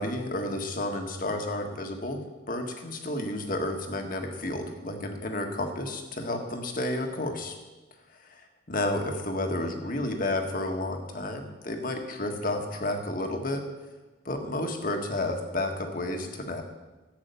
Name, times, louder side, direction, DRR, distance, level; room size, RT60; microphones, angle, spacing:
voice 1, 0.0-2.2 2.5-7.5 8.2-8.3 8.7-13.6 14.2-16.6, left 1 dB, 45° left, 4 dB, 1.6 m, -31 dB
13.5 x 9.0 x 6.9 m, 1.2 s
head